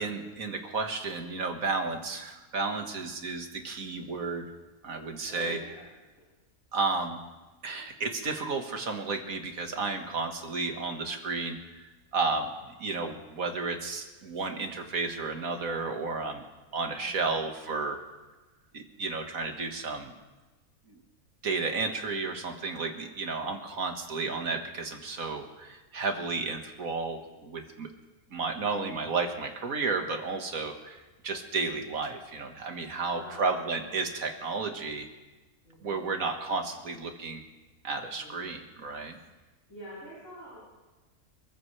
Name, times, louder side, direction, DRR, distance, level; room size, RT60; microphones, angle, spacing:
voice 1, 0.0-4.5 4.8-5.6 6.7-7.2 7.6-11.6 12.1-12.5 12.8-16.4 16.7-18.0 18.7-20.1 21.4-27.9 28.3-35.1 35.8-37.4 37.8-39.2, right 4 dB, 70° right, 4 dB, 2.0 m, -32 dB
voice 2, 5.2-5.8 33.0-33.5 34.3-34.8 35.6-36.1 38.0-38.4 39.7-40.6, equal, 60° left, -9 dB, 7.4 m, -47 dB
28.0 x 15.0 x 3.3 m, 1.2 s
omnidirectional pair, 1.5 m